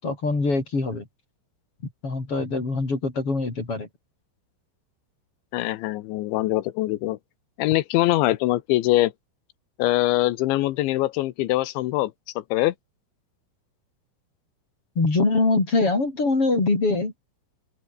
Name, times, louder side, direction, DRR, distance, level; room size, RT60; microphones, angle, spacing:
voice 1, 0.0-1.1 2.0-3.9 15.0-17.1, left 3 dB, 30° left, 6.0 m, -23 dB
voice 2, 5.5-7.2 7.6-9.1 9.8-12.7, left 17 dB, 75° left, 3.2 m, -23 dB
open air
omnidirectional pair, 5.6 m